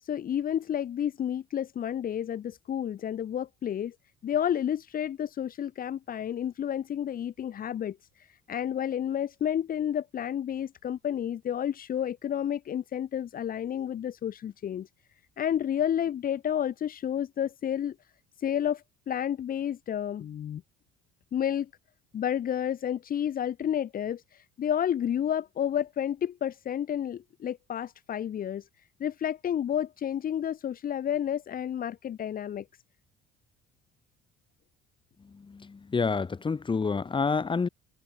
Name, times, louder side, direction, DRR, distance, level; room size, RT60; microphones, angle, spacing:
voice 1, 0.0-3.9 4.2-14.9 15.4-17.9 18.4-20.6 21.3-21.7 22.1-28.7 29.0-32.6, left 9 dB, 50° left, 3.4 m, -30 dB
voice 2, 35.7-37.7, left 4 dB, 25° left, 5.8 m, -28 dB
supercardioid pair, 95°, 19 cm